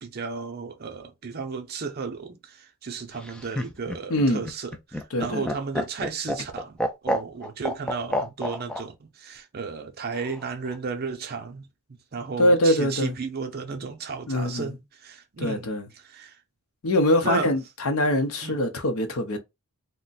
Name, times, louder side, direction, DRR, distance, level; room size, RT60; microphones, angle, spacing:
voice 1, 0.0-6.8 7.0-11.7 12.1-15.7 16.0-16.4 17.2-17.5 18.4-18.6, right 5 dB, 45° right, 0.6 m, -34 dB
Laughter, 3.1-8.8 10.1-10.8, equal, 5° left, 0.3 m, -29 dB
voice 2, 4.1-4.5 5.1-5.5 12.4-13.1 14.3-14.7 15.4-15.9 16.8-19.4, left 1 dB, 70° left, 0.7 m, -23 dB
2.5 x 2.1 x 3.9 m
head